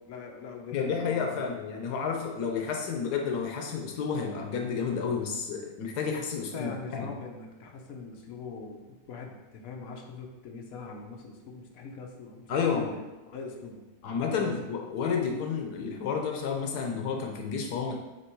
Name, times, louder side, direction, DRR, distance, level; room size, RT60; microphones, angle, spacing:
voice 1, 0.1-1.5 6.4-8.8 9.1-12.5 12.7-12.9 13.3-13.8 14.4-14.5, left 4 dB, 65° left, 1 dB, 1.3 m, -42 dB
voice 2, 0.7-7.1 12.5-13.0 14.0-18.0, left 6 dB, 85° left, 2 dB, 1.3 m, -31 dB
7.7 x 3.0 x 4.5 m, 1.1 s
omnidirectional pair, 1.7 m